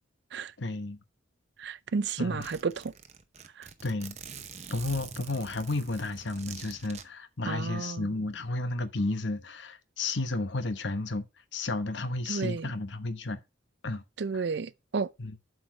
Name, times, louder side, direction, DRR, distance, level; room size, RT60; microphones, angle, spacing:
voice 1, 0.6-1.0 2.2-2.5 3.8-4.2 4.7-11.3 11.5-13.4 13.8-14.0 14.3-14.4 15.2-15.4, left 2 dB, 60° left, 0.9 m, -32 dB
Zipper (clothing), 1.6-1.7 2.0-2.1 2.4-7.0, right 6 dB, 35° right, 0.8 m, -45 dB
voice 2, 1.6-2.8 3.6-3.7 7.5-8.1 12.3-12.7 14.2-15.1, right 4 dB, 55° right, 0.4 m, -32 dB
7.8 x 4.9 x 5.4 m
head